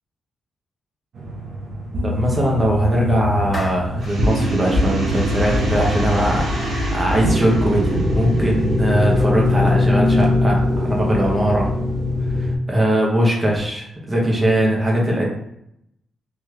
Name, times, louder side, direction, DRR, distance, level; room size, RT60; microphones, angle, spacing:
sound 1, 1.2-12.6, left 1 dB, 55° right, 0.6 m, -21 dB
voice 1, 2.0-11.7 12.4-15.3, right 1 dB, 15° right, -3 dB, 0.9 m, -20 dB
Clapping, 3.5-4.2, left 2 dB, 25° left, 0.4 m, -33 dB
sound 2, 4.0-9.5, right 1 dB, 85° right, 1.2 m, -35 dB
3.2 x 2.8 x 2.4 m, 0.77 s
cardioid pair, 135°, 0 cm